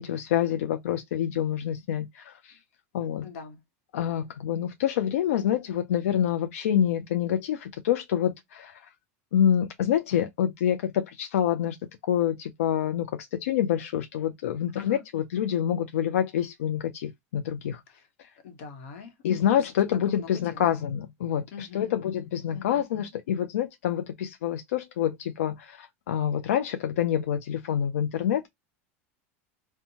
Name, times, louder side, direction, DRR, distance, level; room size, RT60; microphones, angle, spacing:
voice 1, 0.0-2.6 2.9-3.2 3.9-8.9 9.3-11.8 12.1-17.8 19.2-28.5, left 10 dB, 85° left, 0.4 m, -27 dB
voice 2, 3.2-3.6 14.8-15.0 17.9-18.1 18.4-19.7 20.1-20.7 21.5-22.0 22.5-22.9, left 6 dB, 70° left, 0.9 m, -43 dB
2.7 x 2.1 x 2.7 m
supercardioid pair, 110°, 7 cm